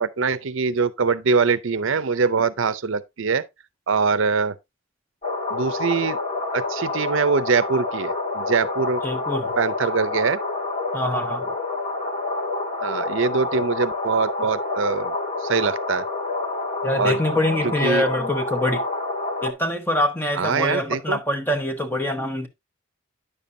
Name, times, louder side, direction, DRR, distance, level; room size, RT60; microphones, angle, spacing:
voice 1, 0.0-3.5 3.9-4.6 5.5-6.2 6.5-9.0 9.6-10.4 12.8-16.0 17.0-17.2 17.6-18.0 20.4-21.2, right 5 dB, 70° right, 0.6 m, -23 dB
sound 1, 5.2-19.5, left 2 dB, 35° left, 1.8 m, -28 dB
voice 2, 9.0-9.5 10.9-11.5 16.8-18.8 19.4-22.5, left 1 dB, 10° left, 1.0 m, -24 dB
9.8 x 7.0 x 2.6 m
head